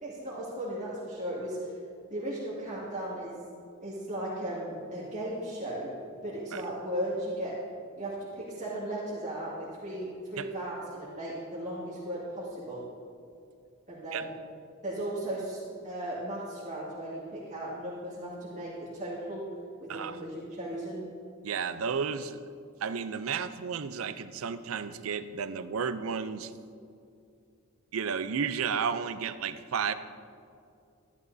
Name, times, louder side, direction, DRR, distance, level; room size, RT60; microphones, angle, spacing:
voice 1, 0.0-1.8 2.1-3.3 3.8-5.9 6.2-7.6 8.0-12.8 13.9-14.3 14.8-19.5 19.9-21.0, right 1 dB, 35° right, -9 dB, 2.0 m, -36 dB
voice 2, 21.4-22.4 22.8-26.5 27.9-29.9, right 6 dB, 80° right, 13 dB, 0.5 m, -32 dB
14.0 x 11.0 x 2.7 m, 2.4 s
head